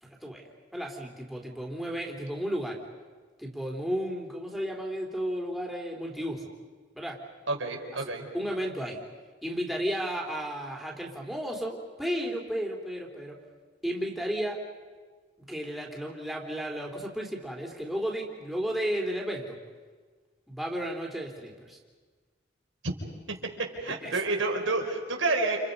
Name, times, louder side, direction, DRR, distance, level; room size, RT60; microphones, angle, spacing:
voice 1, 0.0-2.8 3.4-6.5 6.9-7.2 8.0-9.0 9.4-13.4 13.8-14.6 15.5-19.6 20.5-21.8 24.0-24.1, equal, ahead, 1 dB, 3.4 m, -33 dB
voice 2, 7.5-8.3 23.3-23.4 23.8-25.6, right 3 dB, 90° right, 1 dB, 4.6 m, -29 dB
29.5 x 29.5 x 5.4 m, 1.5 s
head